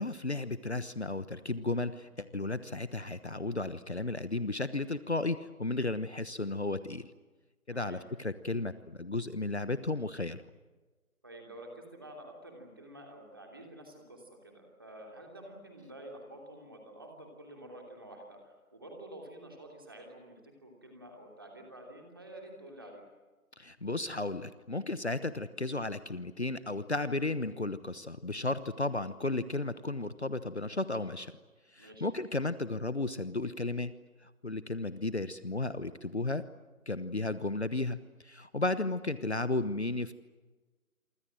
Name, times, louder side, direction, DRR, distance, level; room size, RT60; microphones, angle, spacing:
voice 1, 0.0-7.1 7.7-10.4 23.6-31.3 31.7-33.9 34.2-36.4 36.9-38.0 38.2-40.2, left 2 dB, 50° left, 13 dB, 1.1 m, -34 dB
voice 2, 7.7-8.0 11.2-23.0 31.8-32.1 38.6-38.8, right 1 dB, 15° right, 1 dB, 2.9 m, -49 dB
27.5 x 25.0 x 7.7 m, 1.3 s
figure-of-eight pair, 175°, 43 cm